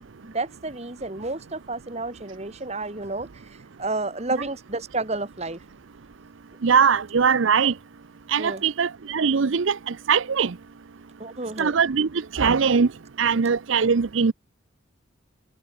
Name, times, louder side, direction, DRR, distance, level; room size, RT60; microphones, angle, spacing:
voice 1, 0.0-5.6 8.4-8.6 11.2-11.8, right 2 dB, 30° right, 1.8 m, -31 dB
voice 2, 6.6-7.7 8.3-10.5 11.6-12.9 13.2-14.3, right 6 dB, 70° right, 0.6 m, -21 dB
head